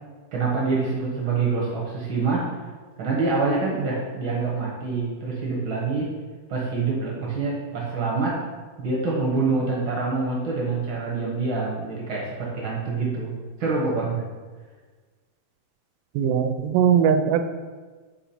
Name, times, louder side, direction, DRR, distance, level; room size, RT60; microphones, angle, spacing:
voice 1, 0.3-2.5 3.0-6.1 6.5-8.4 8.8-13.3 13.6-14.2, right 4 dB, 55° right, -4 dB, 1.4 m, -26 dB
voice 2, 16.2-17.4, right 8 dB, 85° right, 9 dB, 2.1 m, -20 dB
6.8 x 5.4 x 4.3 m, 1.4 s
omnidirectional pair, 3.8 m